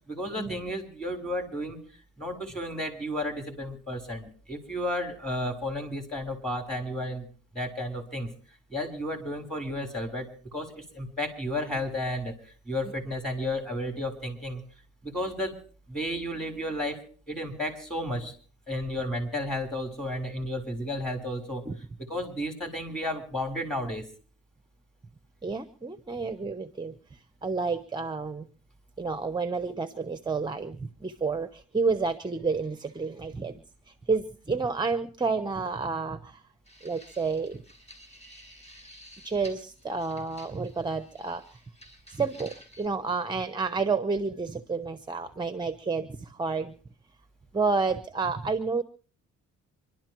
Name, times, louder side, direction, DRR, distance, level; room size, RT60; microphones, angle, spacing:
voice 1, 0.1-1.8 2.2-7.3 7.5-8.3 8.7-10.3 10.5-12.4 12.7-14.6 15.0-15.5 15.9-17.0 17.3-18.4 18.7-21.6 22.1-24.0, left 1 dB, ahead, 4 dB, 3.8 m, -32 dB
voice 2, 25.4-27.0 27.4-28.5 29.0-36.4 36.8-37.6 39.2-41.4 42.1-46.7 47.5-48.8, right 4 dB, 15° right, 11 dB, 0.8 m, -30 dB
sound 1, 36.7-42.9, equal, 20° left, 5.4 m, -52 dB
26.5 x 12.0 x 3.0 m, 0.41 s
cardioid pair, 90°, 30 cm